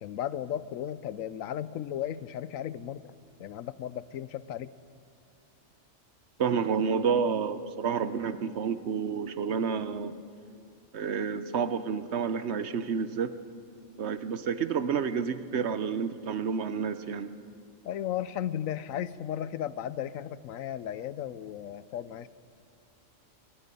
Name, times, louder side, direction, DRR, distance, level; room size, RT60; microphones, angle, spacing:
voice 1, 0.0-3.1 3.4-4.7 17.8-22.3, left 10 dB, 90° left, 16 dB, 1.1 m, -35 dB
voice 2, 6.4-10.1 10.9-13.4 14.0-17.3, right 6 dB, 60° right, 12 dB, 1.0 m, -29 dB
26.5 x 20.5 x 5.4 m, 2.5 s
omnidirectional pair, 1.3 m